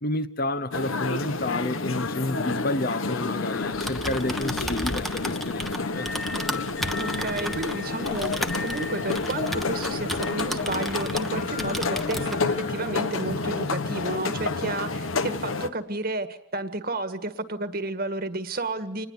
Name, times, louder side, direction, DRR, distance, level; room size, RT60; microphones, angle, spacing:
voice 1, 0.0-6.1, left 2 dB, 45° left, 0.9 m, -30 dB
sound 1, 0.7-15.7, left 3 dB, 85° left, 1.2 m, -29 dB
Typing, 3.6-11.3 11.6-12.4, equal, ahead, 1.1 m, -34 dB
sound 2, 5.9-15.2, left 3 dB, 65° left, 2.7 m, -40 dB
voice 2, 7.0-19.1, right 2 dB, 45° right, 1.8 m, -32 dB
26.5 x 20.0 x 8.2 m
head